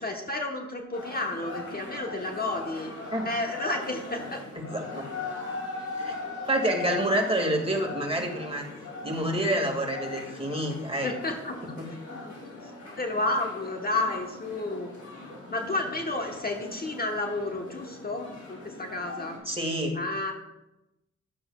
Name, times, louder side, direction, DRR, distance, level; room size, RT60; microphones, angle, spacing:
voice 1, 0.0-2.9 3.2-4.4 11.0-11.8 12.1-12.3 12.6-12.7 13.0-14.9 15.5-19.4 19.9-20.3, left 2 dB, 30° left, 2 dB, 1.2 m, -31 dB
sound 1, 0.9-19.4, left 3 dB, 70° left, 2.8 m, -40 dB
voice 2, 4.6-5.0 6.0-6.2 6.5-8.7 9.0-11.1 11.8-12.2 19.5-20.0, right 1 dB, 20° right, 1 dB, 2.1 m, -28 dB
11.0 x 7.6 x 2.4 m, 0.93 s
supercardioid pair, 45°, 29 cm